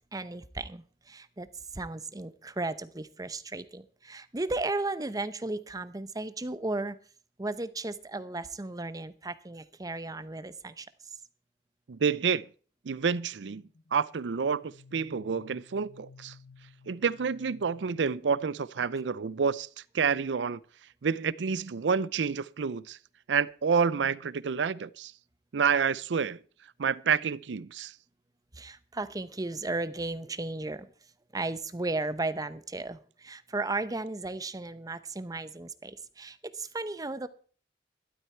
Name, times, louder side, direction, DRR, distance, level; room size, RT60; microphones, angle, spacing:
voice 1, 0.1-1.5 1.7-7.0 7.4-10.9 28.6-30.9 31.3-37.3, right 2 dB, 20° right, 0.8 m, -35 dB
voice 2, 11.9-12.5 12.9-13.6 13.9-16.3 16.9-19.7 19.9-20.6 21.0-23.0 23.3-25.1 25.5-26.4 26.8-27.9, right 6 dB, 85° right, 0.5 m, -28 dB
sound 1, 13.4-18.9, left 5 dB, 85° left, 1.1 m, -56 dB
12.5 x 12.0 x 4.4 m
head